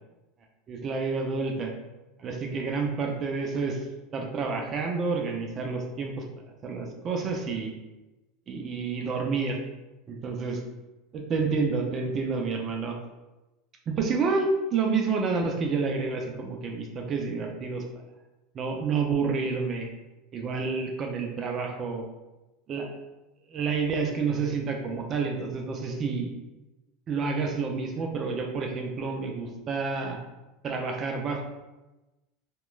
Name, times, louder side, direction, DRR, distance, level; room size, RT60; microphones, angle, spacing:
voice 1, 0.7-1.7 2.2-3.9 4.1-6.2 6.6-7.7 8.5-9.6 10.1-10.6 11.1-13.0 13.9-17.8 18.5-19.9 20.3-22.0 22.7-22.9 23.5-26.3 27.1-30.2 30.6-31.4, right 4 dB, 40° right, 2 dB, 0.4 m, -29 dB
2.9 x 2.2 x 2.3 m, 1.0 s
hypercardioid pair, 95°, 0 cm